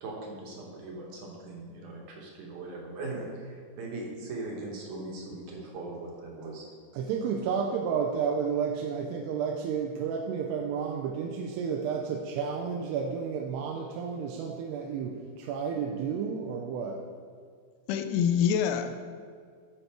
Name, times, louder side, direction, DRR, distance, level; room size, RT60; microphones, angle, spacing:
voice 1, 0.0-6.7, right 2 dB, 60° right, -2 dB, 2.3 m, -40 dB
voice 2, 6.9-17.0, right 6 dB, 85° right, 1 dB, 2.7 m, -31 dB
voice 3, 17.9-19.0, left 8 dB, 85° left, 8 dB, 2.7 m, -26 dB
11.0 x 5.7 x 4.5 m, 2.1 s
omnidirectional pair, 4.7 m